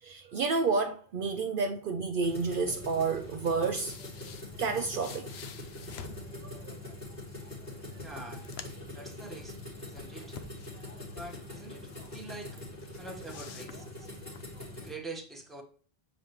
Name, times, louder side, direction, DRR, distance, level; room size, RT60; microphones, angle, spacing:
voice 1, 0.0-4.0 4.6-5.3 6.4-6.8, right 4 dB, 65° right, 0.7 m, -30 dB
sound 1, 2.2-14.9, left 1 dB, 70° left, 3.3 m, -44 dB
sound 2, 3.4-6.3 7.4-7.5 7.8-8.9 9.3-11.4 11.8-12.5 12.8-14.4, left 7 dB, 90° left, 1.0 m, -48 dB
voice 2, 8.0-8.4 8.9-9.6 9.8-10.4 11.1-12.6 13.0-14.1 14.8-15.6, right 2 dB, ahead, 1.3 m, -45 dB
7.0 x 5.0 x 3.0 m
omnidirectional pair, 1.0 m